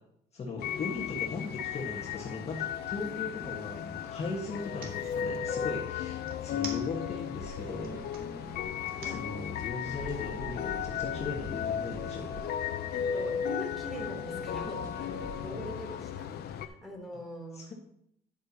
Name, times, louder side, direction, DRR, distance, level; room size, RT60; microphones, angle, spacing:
voice 1, 0.3-8.1 9.0-12.4 15.5-15.7 17.5-17.7, left 3 dB, 40° left, -2 dB, 1.6 m, -38 dB
sound 1, 0.6-16.7, left 9 dB, 70° left, 0.7 m, -35 dB
sound 2, 2.5-3.6 4.5-4.9 6.3-7.3 7.7-8.2 8.8-9.2, right 4 dB, 60° right, 2.2 m, -45 dB
sound 3, 7.4-15.5, right 1 dB, 20° right, 2.7 m, -47 dB
voice 2, 12.9-17.6, right 1 dB, ahead, -1 dB, 3.3 m, -43 dB
10.0 x 8.2 x 2.9 m, 0.72 s
cardioid pair, 110°, 17 cm